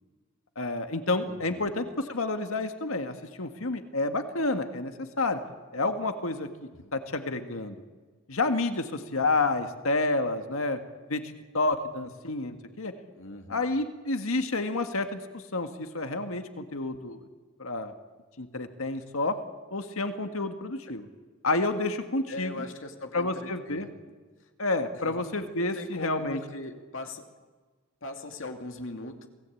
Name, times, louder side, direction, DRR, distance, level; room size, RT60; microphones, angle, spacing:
voice 1, 0.6-5.4 5.7-6.5 6.9-7.8 8.3-10.8 11.1-12.9 13.5-17.2 17.6-17.9 18.4-19.3 19.7-21.1 21.4-22.5 23.1-23.9 24.6-26.4, left 2 dB, 85° left, 7 dB, 1.8 m, -29 dB
voice 2, 1.3-1.7 6.8-6.9 13.1-13.7 22.3-23.9 24.4-24.5 24.9-25.2 25.6-27.2 28.0-29.3, left 2 dB, 65° left, 4 dB, 2.6 m, -40 dB
27.5 x 18.0 x 8.5 m, 1.4 s
head